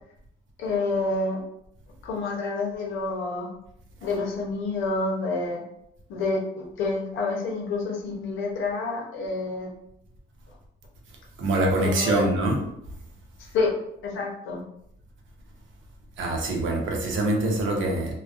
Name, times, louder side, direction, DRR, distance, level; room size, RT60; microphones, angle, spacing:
voice 1, 0.6-1.4 2.0-3.5 4.0-5.6 6.1-9.7 11.8-12.3 13.5-13.7 14.0-14.6, left 3 dB, 85° left, -1 dB, 0.7 m, -28 dB
voice 2, 11.4-12.6 16.2-18.1, right 2 dB, 75° right, 0 dB, 0.7 m, -24 dB
2.4 x 2.2 x 2.4 m, 0.77 s
cardioid pair, 90°, 20 cm